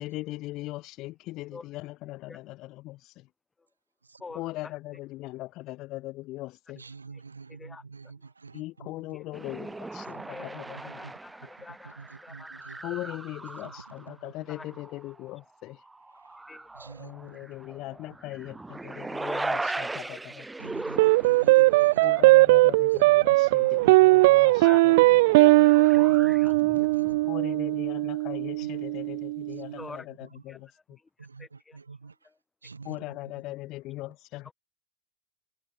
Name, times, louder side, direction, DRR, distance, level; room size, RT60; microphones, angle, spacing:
voice 1, 0.0-3.1 4.3-6.8 8.5-10.6 10.9-11.1 12.8-15.8 17.0-20.5 22.0-24.7 27.3-30.0 30.4-31.0 32.8-34.5, left 18 dB, 50° left, 1.6 m, -39 dB
voice 2, 4.2-4.7 7.1-7.2 7.5-7.8 8.2-8.3 9.1-9.3 10.3-12.0 12.2-12.5 13.0-13.2 14.5-14.7 16.5-16.8 19.2-19.8 22.1-22.2 24.6-24.9 25.3-27.1 29.8-30.1 30.5-31.1 31.4-31.8 32.2-32.4 34.4-34.5, left 4 dB, 15° left, 7.9 m, -46 dB
voice 3, 6.7-8.9 10.1-11.1 12.0-12.8 13.6-13.7 14.1-14.3 16.7-17.4 20.6-22.1 23.1-24.2 25.9-27.2 28.7-28.8 29.5-29.8 31.2-32.1 32.6-33.0 33.2-33.3, right 4 dB, 85° right, 4.7 m, -46 dB
sound 1, 9.3-14.2 14.6-15.3 15.8-22.4 22.7-22.8 23.0-27.3, right 2 dB, 10° right, 7.6 m, -39 dB
sound 2, 21.0-29.6, right 21 dB, 60° right, 1.4 m, -19 dB
figure-of-eight pair, 70°, 0 cm